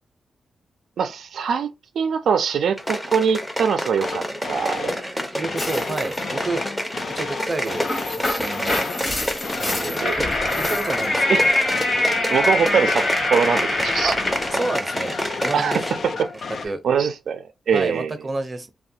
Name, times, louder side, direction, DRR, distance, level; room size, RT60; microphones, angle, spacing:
voice 1, 1.0-1.7 2.0-5.0 10.0-10.1 11.3-11.4 12.0-14.1 15.5-16.3 16.8-18.1, right 6 dB, 80° right, 0.4 m, -23 dB
sound 1, 2.8-16.1 16.3-16.4, equal, 5° left, 0.6 m, -29 dB
sound 2, 4.0-5.1 5.4-9.1 9.4-16.7, left 4 dB, 60° left, 0.3 m, -33 dB
voice 2, 5.0-6.6 7.1-8.8 9.6-10.4 10.7-11.5 14.0-14.2 14.5-15.2 15.4-16.0 16.6-16.8 17.7-18.7, right 2 dB, 30° right, 0.6 m, -30 dB
sound 3, 5.6-6.2 7.5-14.5, left 2 dB, 30° left, 0.9 m, -24 dB
3.2 x 2.2 x 2.7 m
wide cardioid pair, 110°, 0 cm